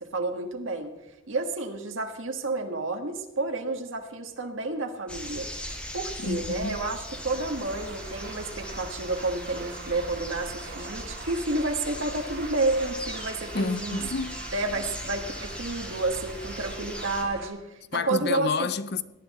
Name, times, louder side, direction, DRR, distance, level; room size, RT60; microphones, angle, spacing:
voice 1, 0.0-0.9 1.3-14.0 14.5-18.7, right 2 dB, 70° right, 1.5 m, -30 dB
sound 1, 5.1-17.2, equal, 5° left, 1.1 m, -39 dB
voice 2, 6.2-6.8 13.5-14.4 17.9-19.0, left 4 dB, 50° left, 0.5 m, -29 dB
sound 2, 7.1-17.5, right 3 dB, 50° right, 1.6 m, -43 dB
17.5 x 10.0 x 4.2 m
head